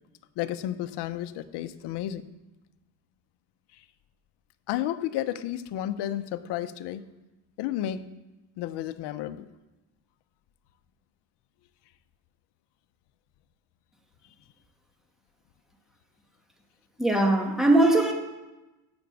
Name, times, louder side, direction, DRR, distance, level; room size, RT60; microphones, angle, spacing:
voice 1, 0.4-2.2 4.7-7.0 7.6-8.0 8.6-9.5, left 12 dB, 60° left, 11 dB, 0.9 m, -32 dB
voice 2, 17.0-18.1, right 2 dB, ahead, 1 dB, 2.1 m, -20 dB
16.0 x 6.2 x 7.0 m, 1.1 s
cardioid pair, 110°, 46 cm